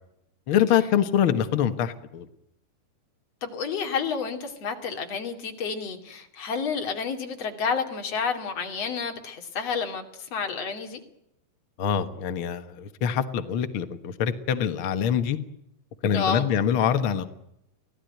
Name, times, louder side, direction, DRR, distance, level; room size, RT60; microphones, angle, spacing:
voice 1, 0.5-2.3 11.8-15.4 16.0-17.2, left 8 dB, 75° left, 8 dB, 1.1 m, -24 dB
voice 2, 3.4-10.0 10.3-11.0 16.1-16.4, left 6 dB, 45° left, 4 dB, 3.4 m, -30 dB
25.0 x 17.0 x 9.2 m, 0.82 s
omnidirectional pair, 4.5 m